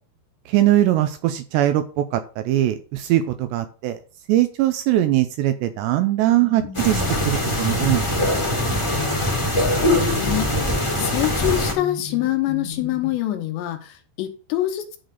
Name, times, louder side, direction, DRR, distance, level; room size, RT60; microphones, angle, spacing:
voice 1, 0.5-4.0 4.3-8.0, right 13 dB, 85° right, 2.6 m, -21 dB
sound 1, 6.3-13.1, left 3 dB, 60° left, 2.4 m, -36 dB
sound 2, 6.7-11.7, left 1 dB, 15° left, 1.1 m, -22 dB
voice 2, 9.4-10.7 11.0-15.0, left 14 dB, 75° left, 3.0 m, -26 dB
11.0 x 4.0 x 6.5 m
omnidirectional pair, 5.5 m